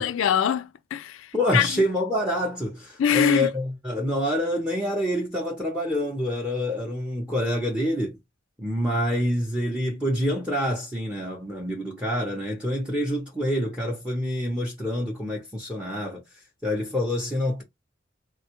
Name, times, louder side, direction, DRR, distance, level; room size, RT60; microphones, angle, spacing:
voice 1, 0.0-1.7 3.0-3.5, left 8 dB, 75° left, 0.3 m, -23 dB
voice 2, 1.3-8.2 8.6-16.2 16.6-17.6, equal, 5° right, 0.7 m, -27 dB
3.5 x 2.3 x 2.9 m
head